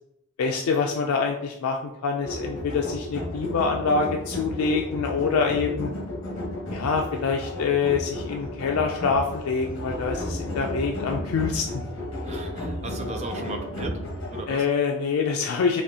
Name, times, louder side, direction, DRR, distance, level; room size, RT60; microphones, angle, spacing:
voice 1, 0.4-5.9 6.7-11.8 14.5-15.8, left 5 dB, 85° left, 1 dB, 0.4 m, -25 dB
sound 1, 2.2-14.4, left 1 dB, 60° left, 1.1 m, -33 dB
voice 2, 12.2-14.0 14.3-14.7, right 3 dB, 30° right, 4 dB, 0.4 m, -36 dB
4.2 x 2.7 x 2.7 m, 0.79 s
head